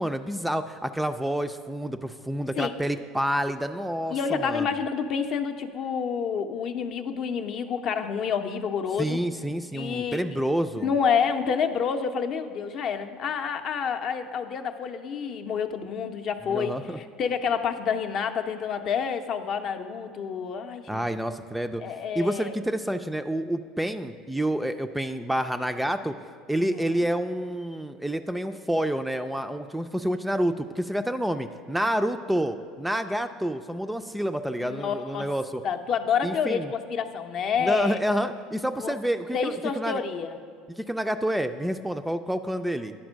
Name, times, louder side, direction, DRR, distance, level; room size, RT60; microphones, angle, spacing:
voice 1, 0.0-4.7 9.0-10.9 16.5-17.0 20.9-21.8 22.1-26.2 26.5-35.6 36.2-36.7 37.6-40.0 40.8-42.9, equal, 5° right, 8 dB, 0.3 m, -28 dB
voice 2, 4.1-9.2 9.7-10.2 10.8-21.0 21.8-22.6 26.6-26.8 34.6-35.3 35.6-38.0 38.8-38.9 39.3-40.4, left 6 dB, 50° left, 6 dB, 0.5 m, -28 dB
10.5 x 4.4 x 6.2 m, 2.1 s
supercardioid pair, 100°, 0 cm